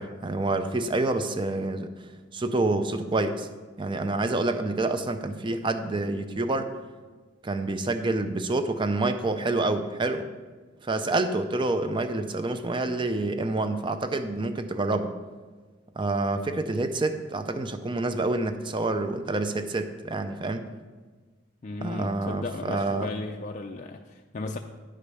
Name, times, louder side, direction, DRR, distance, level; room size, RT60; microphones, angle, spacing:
voice 1, 0.0-1.9 2.3-3.5 3.8-6.7 7.4-10.3 10.8-15.1 16.0-20.7 21.8-23.1, right 2 dB, 25° right, 9 dB, 0.5 m, -27 dB
voice 2, 21.6-24.6, left 2 dB, 40° left, 3 dB, 0.4 m, -35 dB
10.5 x 5.0 x 5.5 m, 1.4 s
head